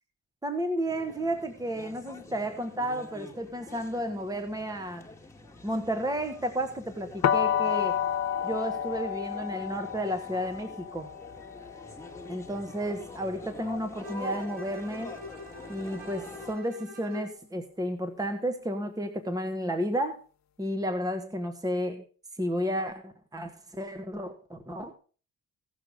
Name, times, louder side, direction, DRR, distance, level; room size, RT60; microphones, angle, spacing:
voice 1, 0.4-5.0 5.6-8.0 8.4-11.1 12.3-15.1 15.7-20.2 20.6-22.0 22.4-24.9, equal, 10° right, 7 dB, 1.5 m, -32 dB
sound 1, 0.9-16.5, left 3 dB, 10° left, 1.8 m, -46 dB
sound 2, 7.2-13.1, left 9 dB, 65° left, 1.1 m, -30 dB
Bowed string instrument, 14.0-17.4, left 2 dB, 85° right, 5.0 m, -44 dB
17.0 x 6.2 x 5.1 m, 0.39 s
cardioid pair, 90°, 30 cm